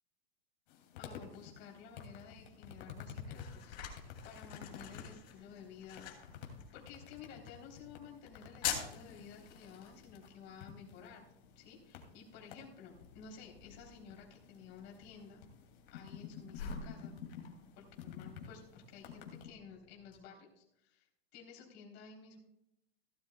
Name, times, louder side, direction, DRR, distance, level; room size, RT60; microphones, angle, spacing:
sound 1, 0.7-19.5, left 7 dB, 55° left, 2.7 m, -52 dB
voice 1, 1.0-3.8 4.2-6.1 6.4-11.3 11.6-15.4 15.9-17.2 17.8-22.4, left 6 dB, 35° left, 0 dB, 3.5 m, -54 dB
sound 2, 2.6-20.2, left 7 dB, 90° left, 4.0 m, -48 dB
16.5 x 11.5 x 2.3 m, 0.81 s
supercardioid pair, 155°, 31 cm